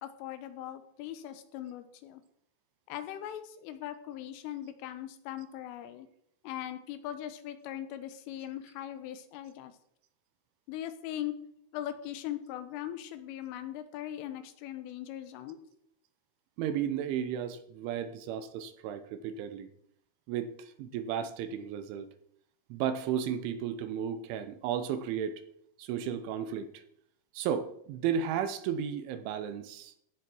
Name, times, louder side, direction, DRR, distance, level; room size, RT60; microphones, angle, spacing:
voice 1, 0.0-2.2 2.9-6.1 6.4-9.7 10.7-11.3 11.7-15.6, left 12 dB, 85° left, 10 dB, 3.6 m, -40 dB
voice 2, 16.6-19.7 20.3-22.1 22.7-25.4 25.8-26.8 27.3-29.9, right 8 dB, 80° right, 10 dB, 3.3 m, -34 dB
15.0 x 10.0 x 4.5 m, 0.71 s
omnidirectional pair, 5.6 m